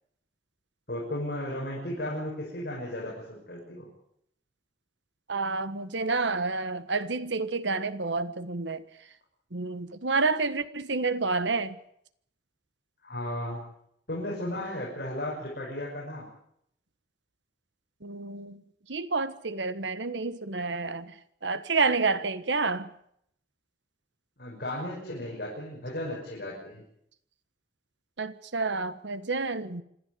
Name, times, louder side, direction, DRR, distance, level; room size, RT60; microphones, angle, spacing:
voice 1, 0.9-3.9 13.0-13.6 14.1-16.3 24.4-26.8, left 1 dB, 55° left, 6.4 m, -35 dB
voice 2, 5.3-8.8 9.5-11.8 18.0-18.6 18.9-21.1 21.4-22.9 28.2-29.8, right 3 dB, 75° right, 1.5 m, -29 dB
26.5 x 12.5 x 9.7 m
head